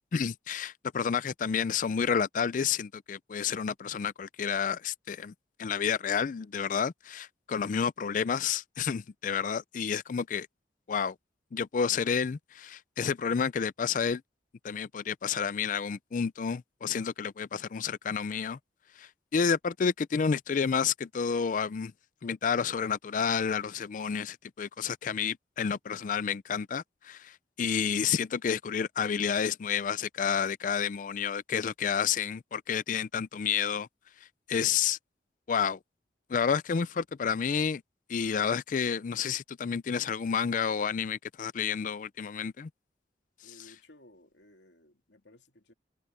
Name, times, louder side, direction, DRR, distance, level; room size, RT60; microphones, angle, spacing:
voice 1, 0.1-5.3 5.6-10.5 10.9-11.1 11.5-14.2 14.6-18.6 19.0-21.9 22.2-33.9 34.5-35.0 35.5-35.8 36.3-37.8 38.1-42.7, left 6 dB, 50° left, 0.4 m, -30 dB
voice 2, 43.4-45.7, left 1 dB, 90° left, 2.8 m, -57 dB
head